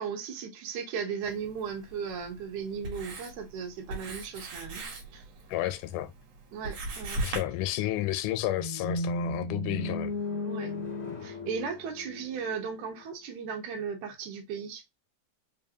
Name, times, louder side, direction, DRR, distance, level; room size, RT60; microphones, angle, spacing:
voice 1, 0.0-4.9 5.1-5.2 6.5-7.3 10.4-10.7 11.2-14.8, right 6 dB, 75° right, 2.3 m, -36 dB
Writing, 1.2-7.4, right 2 dB, 60° right, 2.2 m, -40 dB
voice 2, 5.5-6.1 7.2-10.2, left 14 dB, 85° left, 2.0 m, -31 dB
sound 1, 8.5-12.7, left 1 dB, 30° left, 0.5 m, -34 dB
5.0 x 2.6 x 2.7 m
omnidirectional pair, 3.6 m